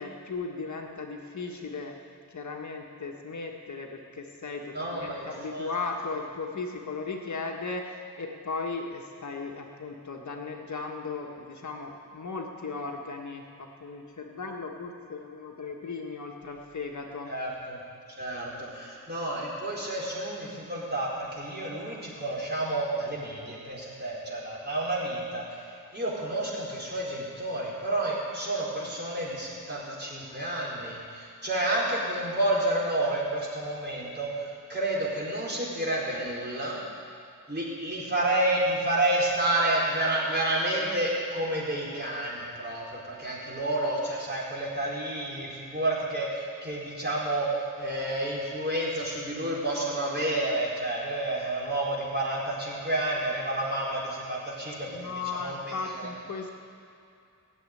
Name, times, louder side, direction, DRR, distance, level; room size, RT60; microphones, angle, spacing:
voice 1, 0.0-17.3 54.9-56.5, left 4 dB, 55° left, 1 dB, 1.5 m, -36 dB
voice 2, 4.7-5.7 17.3-17.8 18.2-25.6 25.9-36.8 37.5-56.1, right 1 dB, 30° right, -5 dB, 4.5 m, -30 dB
18.0 x 7.7 x 9.7 m, 2.5 s
wide cardioid pair, 105°, 34 cm